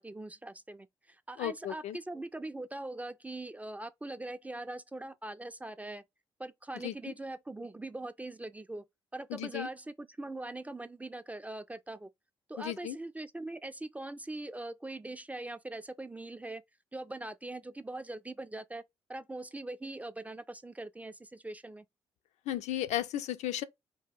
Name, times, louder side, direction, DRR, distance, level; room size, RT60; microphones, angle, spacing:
voice 1, 0.0-6.0 6.4-8.8 9.1-12.1 12.5-16.6 16.9-18.8 19.1-21.8, right 2 dB, 10° right, 0.3 m, -42 dB
voice 2, 1.4-2.0 6.8-6.9 9.3-9.7 12.6-13.0 22.5-23.6, left 12 dB, 65° left, 0.4 m, -34 dB
2.8 x 2.2 x 3.5 m
hypercardioid pair, 40°, 13 cm